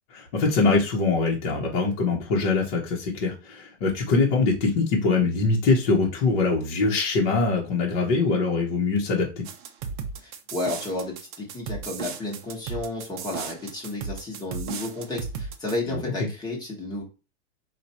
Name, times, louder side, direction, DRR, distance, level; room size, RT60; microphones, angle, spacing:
voice 1, 0.1-9.4, left 3 dB, 40° left, -3 dB, 1.1 m, -23 dB
sound 1, 9.4-15.8, right 6 dB, 40° right, 0.7 m, -35 dB
voice 2, 10.2-17.0, left 2 dB, 10° left, -1 dB, 1.2 m, -32 dB
4.6 x 2.5 x 4.1 m, 0.31 s
supercardioid pair, 155°, 38 cm